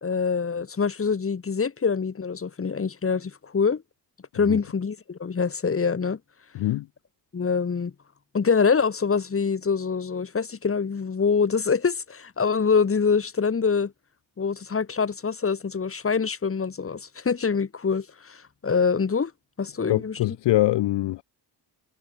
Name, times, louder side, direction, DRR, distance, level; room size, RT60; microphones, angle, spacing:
voice 1, 0.0-3.8 4.3-6.2 7.3-7.9 8.3-13.9 14.4-19.3 19.6-20.2, left 5 dB, 30° left, 2.0 m, -25 dB
voice 2, 6.5-6.9 19.9-21.2, left 16 dB, 75° left, 0.6 m, -23 dB
cardioid pair, 110°, 42 cm